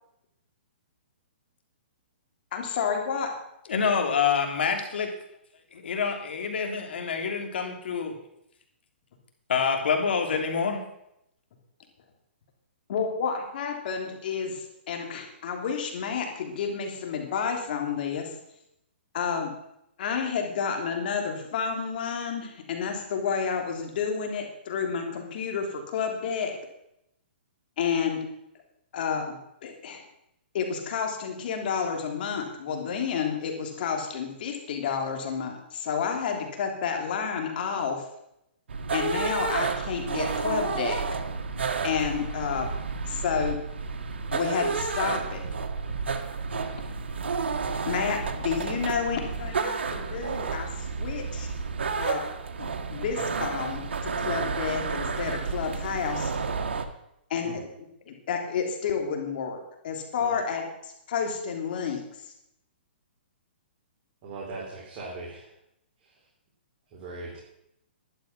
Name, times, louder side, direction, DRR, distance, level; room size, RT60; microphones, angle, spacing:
voice 1, 2.5-3.3 12.9-18.3 19.1-19.5 20.0-26.5 27.8-28.2 28.9-29.3 29.6-30.0 30.5-38.0 38.9-41.2 41.8-42.7 43.1-43.6 44.3-45.4 47.8-51.5 52.0-52.2 52.6-56.3 57.3-57.7 58.1-59.6 59.8-62.0, left 6 dB, 55° left, 3 dB, 3.2 m, -30 dB
voice 2, 3.7-5.1 5.7-8.1 9.5-10.8, left 6 dB, 70° left, 4 dB, 3.0 m, -27 dB
sound 1, 38.7-56.8, right 5 dB, 80° right, 1.6 m, -31 dB
voice 3, 64.2-65.5 66.9-67.4, right 3 dB, 35° right, -4 dB, 3.9 m, -39 dB
11.5 x 11.0 x 6.0 m, 0.79 s
hypercardioid pair, 145°, 6 cm